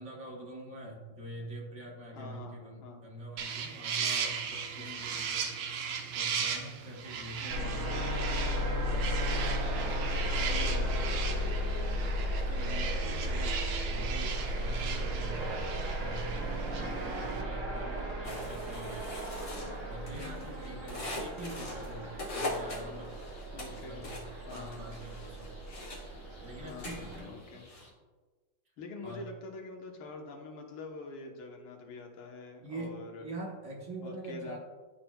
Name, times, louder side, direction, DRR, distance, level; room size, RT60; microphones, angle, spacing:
voice 1, 0.0-5.5 6.1-8.1 8.5-9.1 9.6-10.7 12.4-13.6 13.9-15.7 16.0-23.1 23.5-25.6 26.4-27.6 29.0-29.2 32.6-34.6, right 1 dB, 45° right, -1 dB, 1.1 m, -45 dB
voice 2, 2.1-3.0 4.0-4.4 4.7-5.1 7.4-7.7 10.5-11.1 15.1-15.5 18.0-18.3 20.1-20.6 23.5-24.1 24.5-24.9 26.6-27.6 28.8-33.3 34.0-34.6, left 3 dB, 80° left, 2 dB, 1.8 m, -46 dB
sound 1, 3.4-17.4, right 6 dB, 90° right, 1.5 m, -37 dB
sound 2, 7.5-27.2, equal, 70° right, 2.0 m, -35 dB
sound 3, 18.2-27.9, left 2 dB, 40° left, 1.4 m, -42 dB
11.5 x 4.3 x 2.2 m, 1.3 s
omnidirectional pair, 2.2 m